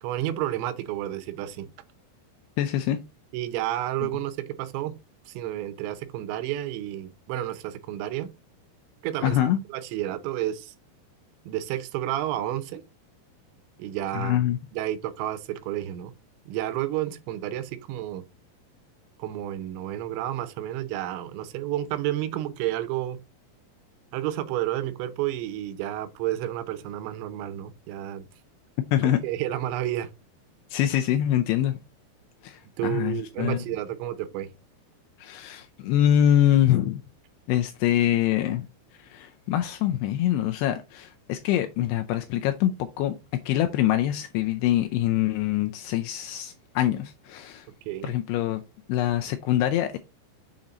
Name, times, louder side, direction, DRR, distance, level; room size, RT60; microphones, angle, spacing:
voice 1, 0.0-1.7 3.3-4.9 5.3-8.3 9.0-9.4 9.7-10.7 11.5-12.8 13.8-14.4 14.7-16.1 16.5-18.2 19.2-23.2 24.1-28.3 29.2-30.1 32.8-34.5 47.9-48.1, right 13 dB, 85° right, 3.1 m, -31 dB
voice 2, 2.6-3.0 9.2-9.6 14.1-14.6 28.9-29.2 30.7-31.8 32.4-33.6 35.2-37.0 37.5-38.7 39.0-43.1 43.5-47.7 48.0-48.6 48.9-50.0, left 12 dB, 80° left, 2.4 m, -24 dB
7.3 x 3.8 x 4.0 m
omnidirectional pair, 5.1 m